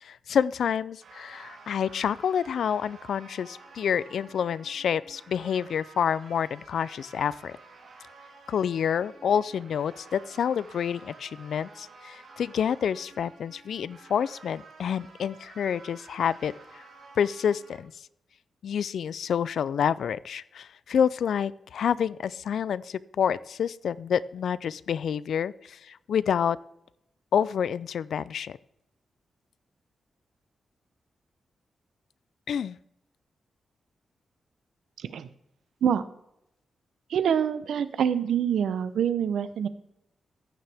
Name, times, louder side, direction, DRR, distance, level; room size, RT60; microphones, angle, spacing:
voice 1, 0.0-7.5 8.5-16.8 17.2-17.9 18.6-26.6 27.3-28.6 32.5-32.8, left 8 dB, 65° left, 19 dB, 0.3 m, -28 dB
sound 1, 1.0-17.8, right 3 dB, 70° right, 3.2 m, -51 dB
voice 2, 37.1-39.7, right 8 dB, 85° right, 13 dB, 0.7 m, -25 dB
14.5 x 9.6 x 3.5 m, 0.82 s
wide cardioid pair, 180°, 0 cm